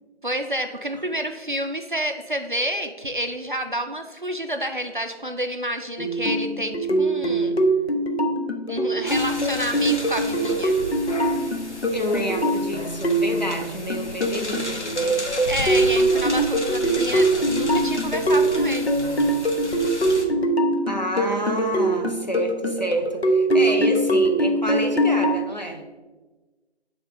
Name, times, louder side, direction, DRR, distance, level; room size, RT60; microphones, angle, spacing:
voice 1, 0.2-7.6 8.7-10.8 15.5-18.9, right 1 dB, 50° right, 5 dB, 0.4 m, -29 dB
sound 1, 6.0-25.4, right 1 dB, 65° left, 0.9 m, -23 dB
sound 2, 9.0-20.2, left 2 dB, 85° left, 1.2 m, -34 dB
voice 2, 11.9-15.2 20.9-25.8, equal, 40° left, 3 dB, 0.6 m, -29 dB
7.0 x 3.5 x 3.9 m, 1.2 s
figure-of-eight pair, 170°, 34 cm